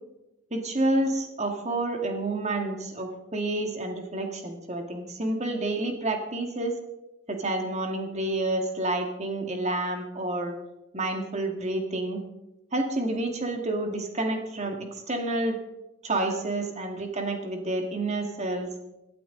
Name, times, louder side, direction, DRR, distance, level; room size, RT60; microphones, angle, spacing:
voice 1, 0.5-6.8 7.3-10.6 10.9-12.2 12.7-15.6 16.0-18.7, right 2 dB, 35° right, 4 dB, 2.1 m, -29 dB
18.0 x 12.5 x 4.0 m, 0.95 s
head